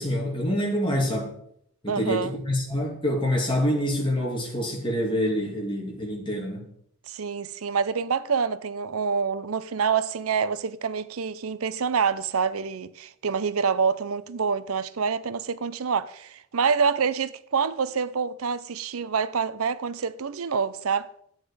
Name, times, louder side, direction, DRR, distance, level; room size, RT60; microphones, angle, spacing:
voice 1, 0.0-1.3 1.8-6.7, equal, 25° left, 2.6 m, -26 dB
voice 2, 1.9-2.3 7.1-21.1, right 6 dB, 85° right, 0.6 m, -27 dB
12.0 x 8.9 x 4.9 m
head